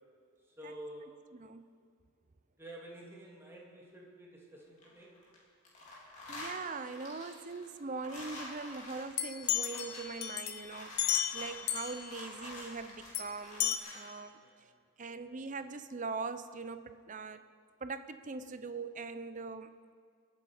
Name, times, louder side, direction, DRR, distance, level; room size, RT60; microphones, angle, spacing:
voice 1, 0.5-1.1 2.6-5.1 14.4-14.8, right 1 dB, 10° right, 2.7 m, -49 dB
voice 2, 1.3-1.7 6.3-14.4 15.0-17.5 17.8-19.7, right 4 dB, 40° right, 0.6 m, -42 dB
sound 1, 4.6-5.4 5.6-14.1, left 2 dB, 35° left, 3.2 m, -48 dB
sound 2, 9.2-12.1 13.1-13.2 13.6-13.8, left 10 dB, 55° left, 0.9 m, -33 dB
22.5 x 8.6 x 5.0 m
head